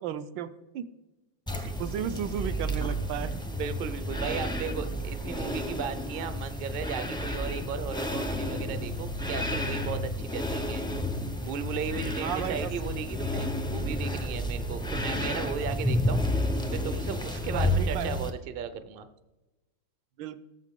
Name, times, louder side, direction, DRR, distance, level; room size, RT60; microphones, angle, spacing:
voice 1, 0.0-0.9 1.6-3.4 12.2-12.7 17.5-18.1 20.2-20.4, right 9 dB, 80° right, 12 dB, 1.3 m, -34 dB
sound 1, 1.5-18.3, left 1 dB, 5° left, 0.3 m, -31 dB
voice 2, 3.5-10.8 11.2-16.2 16.7-19.1, right 7 dB, 60° right, 10 dB, 0.5 m, -36 dB
17.0 x 7.3 x 3.7 m, 1.1 s
omnidirectional pair, 2.0 m